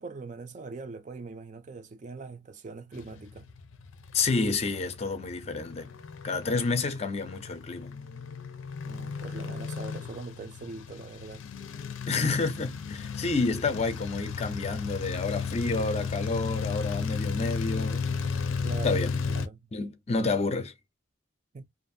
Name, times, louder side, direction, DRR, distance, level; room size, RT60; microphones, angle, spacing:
voice 1, 0.0-3.5 8.8-11.5 12.1-12.3 18.6-19.7 21.5-21.7, right 3 dB, 40° right, 0.4 m, -42 dB
sound 1, 3.0-19.5, left 5 dB, 90° left, 0.6 m, -34 dB
voice 2, 4.1-5.9 6.2-7.9 12.1-18.0 18.8-19.1 19.7-20.7, left 3 dB, 30° left, 0.5 m, -29 dB
2.6 x 2.4 x 2.6 m
head